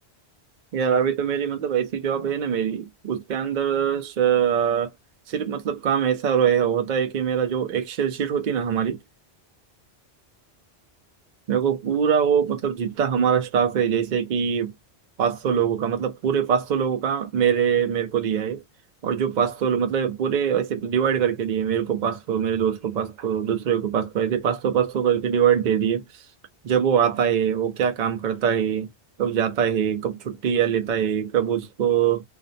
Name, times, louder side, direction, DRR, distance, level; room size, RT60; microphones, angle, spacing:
voice 1, 0.7-4.9 5.3-9.0 11.5-14.7 15.2-18.6 19.0-26.0 26.6-28.9 29.2-32.2, right 8 dB, 55° right, 0.5 m, -23 dB
2.5 x 2.0 x 2.5 m
omnidirectional pair, 1.1 m